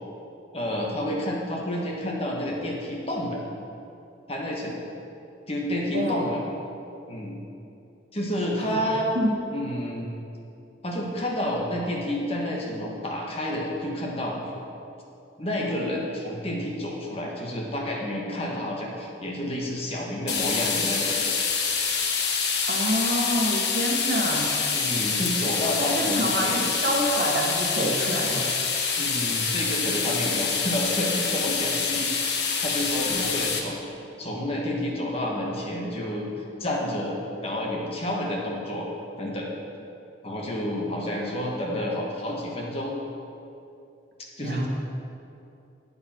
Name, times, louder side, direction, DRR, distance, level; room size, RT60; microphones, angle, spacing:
voice 1, 0.5-3.4 4.3-4.7 5.5-6.4 7.1-7.4 8.1-9.1 9.5-10.1 10.8-14.4 15.4-21.3 24.7-26.7 29.0-32.1 32.3-33.8 34.2-36.3 36.6-38.9 39.2-39.5 40.2-42.9 44.4-44.7, left 1 dB, 35° left, -2 dB, 1.7 m, -29 dB
voice 2, 5.9-6.3 8.6-8.8 9.2-9.3 22.7-24.5 25.9-28.5 33.1-33.5 44.4-44.7, equal, 55° right, -1 dB, 1.7 m, -27 dB
sound 1, 20.3-33.6, left 5 dB, 70° left, 1.2 m, -26 dB
13.0 x 8.7 x 4.6 m, 2.7 s
head